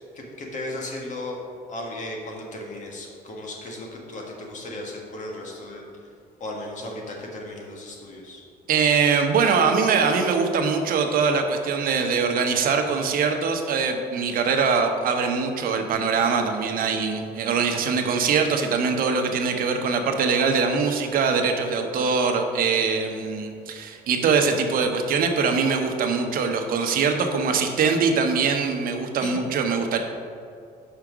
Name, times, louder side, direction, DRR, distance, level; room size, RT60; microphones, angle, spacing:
voice 1, 0.1-1.4 1.7-5.8 6.4-8.4 29.2-29.4, left 1 dB, 45° left, -1 dB, 1.5 m, -35 dB
voice 2, 8.7-30.0, right 5 dB, 60° right, 4 dB, 0.9 m, -22 dB
5.7 x 4.9 x 6.1 m, 2.4 s
cardioid pair, 110°, 17 cm